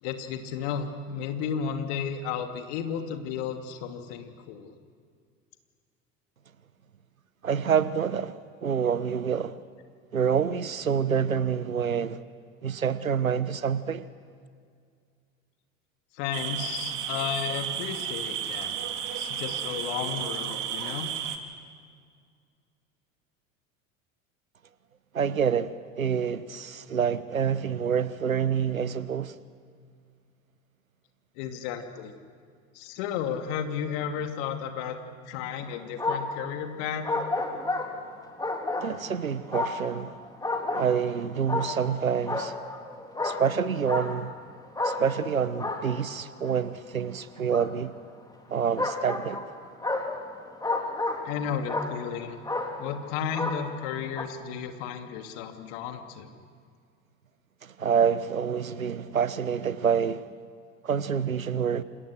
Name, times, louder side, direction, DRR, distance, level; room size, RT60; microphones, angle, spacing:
voice 1, 0.0-4.7 16.1-18.8 19.1-21.1 31.4-32.1 32.7-35.0 35.3-37.1 51.2-52.4 52.8-56.3, left 7 dB, 60° left, 2.8 m, -33 dB
voice 2, 7.4-9.6 10.1-12.2 12.6-14.0 25.1-29.4 38.8-40.2 40.7-42.5 43.2-44.3 44.8-47.9 48.5-49.4 57.6-60.3 60.8-61.8, right 7 dB, 90° right, 1.1 m, -27 dB
sound 1, 16.3-21.4, right 9 dB, 50° right, 2.8 m, -33 dB
sound 2, 35.6-36.5 37.0-39.2 39.5-41.1 41.5-42.0 42.3-44.4 44.8-46.6 47.5-47.7 48.8-51.4 51.7-52.2 52.4-53.0 53.3-53.9 54.2-54.3, left 2 dB, 10° left, 3.5 m, -31 dB
28.5 x 27.0 x 6.5 m
figure-of-eight pair, 75°, 40 cm